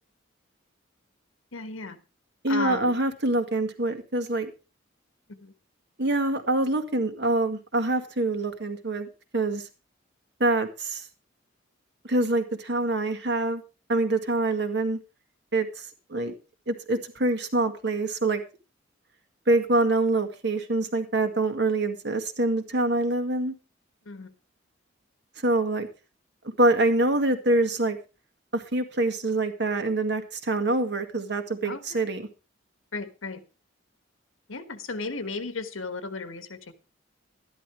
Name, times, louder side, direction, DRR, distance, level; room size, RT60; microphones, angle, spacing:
voice 1, 1.5-2.0 2.5-2.9 5.4-5.5 24.0-24.3 31.6-32.1 32.9-33.4 34.5-36.7, left 3 dB, 90° left, 11 dB, 1.5 m, -35 dB
voice 2, 2.4-4.5 6.0-9.1 9.3-9.6 10.4-11.0 12.0-13.6 13.9-15.0 15.5-16.3 16.7-18.4 19.5-23.5 25.4-25.9 26.6-28.0 28.5-32.2, right 2 dB, 55° right, 7 dB, 2.0 m, -25 dB
13.0 x 11.0 x 4.8 m, 0.32 s
head